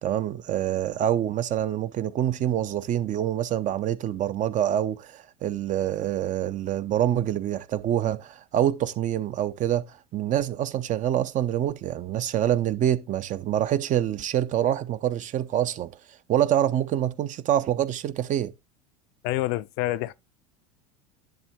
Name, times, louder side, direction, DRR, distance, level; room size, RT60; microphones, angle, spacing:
voice 1, 0.0-15.9 16.3-18.5, right 11 dB, 40° right, 0.8 m, -26 dB
voice 2, 19.2-20.1, left 16 dB, 60° left, 0.6 m, -27 dB
10.5 x 3.5 x 4.4 m
hypercardioid pair, 80°, 19 cm